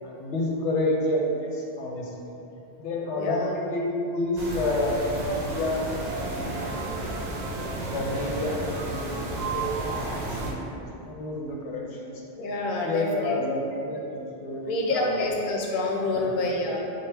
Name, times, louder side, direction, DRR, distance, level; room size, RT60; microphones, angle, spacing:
voice 1, 0.0-2.1 2.8-6.4 7.8-10.8 11.0-12.2 12.8-15.2 16.1-16.4, left 1 dB, 85° left, -1 dB, 0.9 m, -29 dB
voice 2, 3.1-3.5 12.4-13.3 14.6-16.8, left 2 dB, 60° left, -1 dB, 0.6 m, -27 dB
sound 1, 4.4-10.5, right 2 dB, 50° right, 0.6 m, -32 dB
3.6 x 2.7 x 3.3 m, 2.8 s
omnidirectional pair, 1.1 m